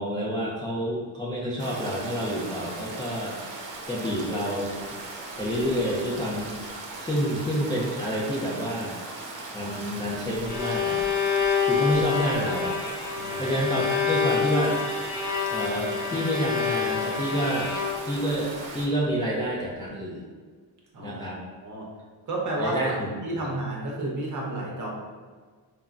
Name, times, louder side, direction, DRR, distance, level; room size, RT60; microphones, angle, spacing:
voice 1, 0.0-3.4 3.9-4.7 5.4-6.6 7.0-9.0 9.5-11.0 11.7-12.8 13.4-14.8 15.5-17.7 18.1-20.3 21.0-21.4 22.6-23.1 23.4-23.5, equal, 10° left, -6 dB, 0.3 m, -28 dB
Stream, 1.6-18.9, right 2 dB, 80° right, 0.6 m, -39 dB
Bowed string instrument, 10.2-18.3, left 6 dB, 40° left, 0.7 m, -27 dB
voice 2, 13.1-13.6 20.9-21.2 21.6-21.9 22.3-22.9 23.2-24.9, right 1 dB, 40° right, -2 dB, 0.8 m, -31 dB
3.6 x 2.1 x 2.3 m, 1.5 s
cardioid pair, 100°, 45 cm